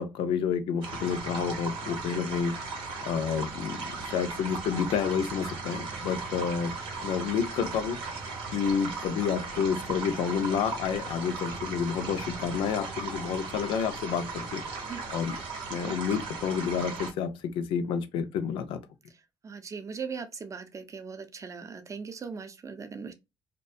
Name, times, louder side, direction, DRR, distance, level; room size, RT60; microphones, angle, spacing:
voice 1, 0.0-2.6 3.0-6.7 7.0-8.0 8.5-14.6 15.1-15.4 15.7-18.8, left 7 dB, 70° left, 0.4 m, -29 dB
sound 1, 0.8-17.1, right 4 dB, 75° right, 0.8 m, -37 dB
voice 2, 19.4-23.1, right 5 dB, 35° right, 0.5 m, -39 dB
2.3 x 2.1 x 2.5 m
supercardioid pair, 65°, 9 cm